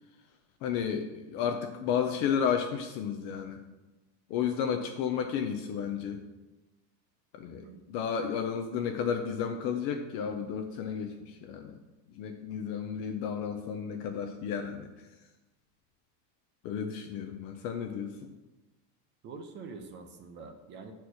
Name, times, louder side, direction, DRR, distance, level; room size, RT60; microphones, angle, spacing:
voice 1, 0.6-3.6 4.3-6.2 7.3-11.8 12.1-15.1 16.6-18.3, left 7 dB, 35° left, 5 dB, 0.4 m, -32 dB
voice 2, 19.2-20.9, right 4 dB, 25° right, 6 dB, 0.6 m, -45 dB
8.1 x 4.4 x 6.3 m, 1.1 s
supercardioid pair, 160°, 47 cm